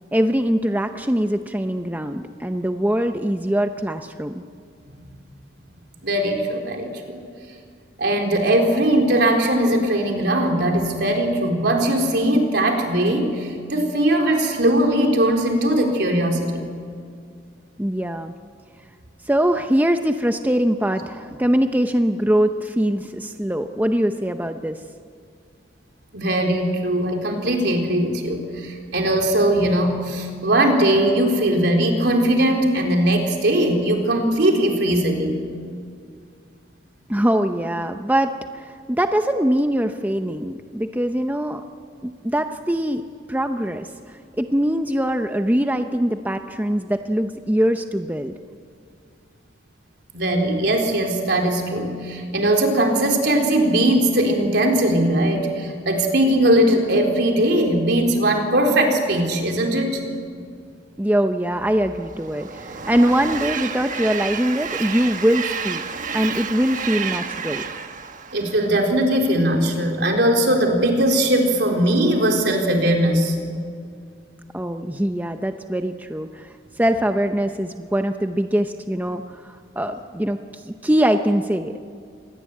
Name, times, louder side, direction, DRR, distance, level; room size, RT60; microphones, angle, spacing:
voice 1, 0.1-4.4 17.8-18.3 19.3-24.8 37.1-41.6 42.0-43.0 43.3-43.9 44.4-48.3 61.0-65.8 66.1-67.7 74.5-81.8, equal, 10° right, 6 dB, 0.7 m, -22 dB
voice 2, 6.0-7.2 8.0-16.6 26.1-35.4 50.1-60.0 68.3-73.3, right 1 dB, 65° right, 2 dB, 4.0 m, -20 dB
Train, 61.7-69.2, right 6 dB, 45° right, 1.3 m, -31 dB
26.5 x 20.5 x 8.5 m, 2.2 s
head